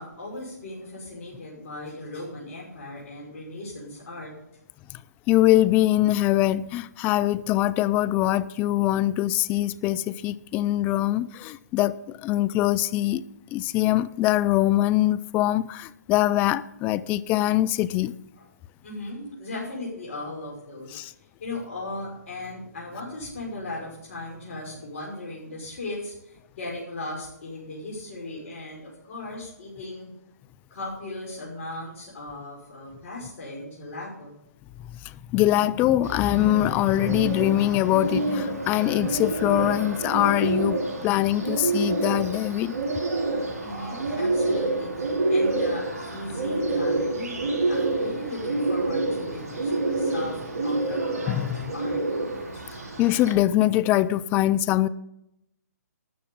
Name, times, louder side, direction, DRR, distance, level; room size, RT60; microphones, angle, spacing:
voice 1, 0.0-4.3 18.4-18.5 18.8-21.0 21.4-30.1 30.7-34.3 43.6-52.0 52.5-52.6, left 2 dB, 55° left, 5.7 m, -37 dB
voice 2, 5.3-13.2 13.5-18.1 20.9-21.1 35.0-42.8 51.3-51.7 53.0-54.9, left 14 dB, 20° left, 0.4 m, -23 dB
Bird, 36.0-53.3, right 2 dB, 65° right, 5.2 m, -28 dB
12.5 x 7.0 x 8.6 m
hypercardioid pair, 140°, 9 cm